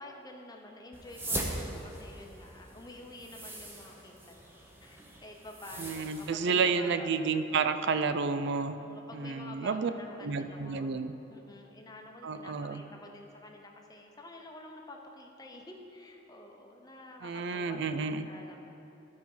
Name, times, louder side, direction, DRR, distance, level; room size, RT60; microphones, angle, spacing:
voice 1, 0.0-7.1 7.6-8.1 8.8-10.9 11.3-18.7, left 1 dB, 20° left, 1 dB, 0.8 m, -49 dB
sound 1, 0.9-6.3, right 1 dB, 10° right, 0.8 m, -40 dB
voice 2, 5.8-8.8 9.1-9.9 10.2-11.1 12.2-12.8 17.2-18.3, right 5 dB, 60° right, 10 dB, 0.4 m, -30 dB
12.0 x 4.4 x 5.5 m, 2.9 s
head